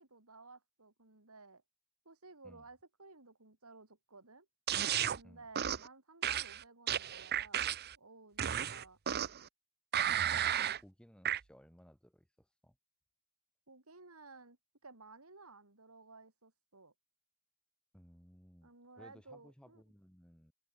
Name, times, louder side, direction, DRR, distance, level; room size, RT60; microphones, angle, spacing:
voice 1, 0.0-1.6 2.1-4.5 5.1-9.0 13.7-14.6 14.8-16.9 18.6-19.8, right 3 dB, 70° right, 3.8 m, -56 dB
sound 1, 4.7-5.2 5.6-5.9 6.2-8.0 8.4-9.5 9.9-10.8 11.3-11.4, right 10 dB, 45° right, 0.7 m, -33 dB
voice 2, 10.4-12.8 17.9-20.5, equal, 5° left, 3.2 m, -60 dB
head